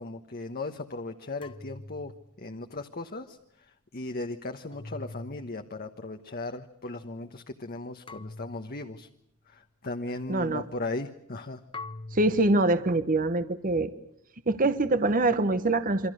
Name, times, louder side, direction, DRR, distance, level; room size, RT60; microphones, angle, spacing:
voice 1, 0.0-9.1 9.5-11.6, left 2 dB, 45° left, 6 dB, 1.2 m, -37 dB
sound 1, 1.4-2.8 4.7-5.8 8.1-9.1 11.7-12.8, left 2 dB, 25° left, 1.0 m, -44 dB
voice 2, 10.3-10.6 12.1-13.9 14.5-16.1, right 2 dB, 40° right, 12 dB, 1.1 m, -24 dB
28.0 x 24.5 x 6.5 m, 0.72 s
head